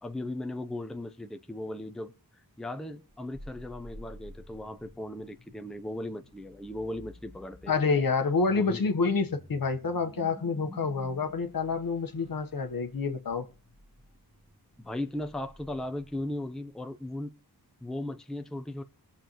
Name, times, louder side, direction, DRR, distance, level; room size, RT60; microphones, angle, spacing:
voice 1, 0.0-7.8 8.5-8.9 14.8-17.3 17.8-18.8, left 1 dB, ahead, 0.6 m, -37 dB
sound 1, 3.1-16.6, equal, 15° right, 1.9 m, -52 dB
voice 2, 7.7-13.4, left 4 dB, 60° left, 1.1 m, -28 dB
21.5 x 7.2 x 3.0 m
wide cardioid pair, 125°, 38 cm